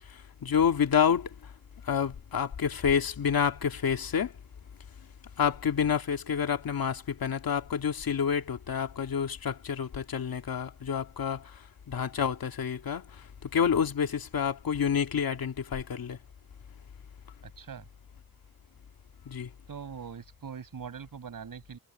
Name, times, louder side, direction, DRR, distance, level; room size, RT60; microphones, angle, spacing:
voice 1, 0.4-1.3 1.8-4.3 5.4-11.6 11.9-16.2 19.3-19.5, left 7 dB, 85° left, 2.3 m, -28 dB
voice 2, 17.4-17.9 19.7-21.8, right 7 dB, 70° right, 6.8 m, -42 dB
wide cardioid pair, 150°, 34 cm